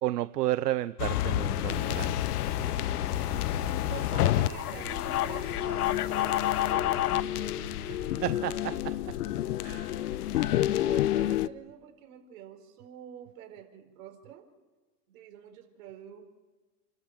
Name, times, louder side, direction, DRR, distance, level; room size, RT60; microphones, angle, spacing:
voice 1, 0.0-2.1 8.2-9.1 9.6-9.9, right 14 dB, 80° right, 15 dB, 0.8 m, -32 dB
sound 1, 1.0-11.5, left 13 dB, 70° left, 0.9 m, -29 dB
sound 2, 1.0-9.6, right 7 dB, 35° right, 3.8 m, -47 dB
sound 3, 1.6-6.7, left 5 dB, 35° left, 5.2 m, -53 dB
voice 2, 3.8-7.8 9.7-14.4 15.1-16.2, right 9 dB, 60° right, 4 dB, 4.6 m, -47 dB
29.5 x 13.0 x 7.6 m, 1.3 s
hypercardioid pair, 135°, 47 cm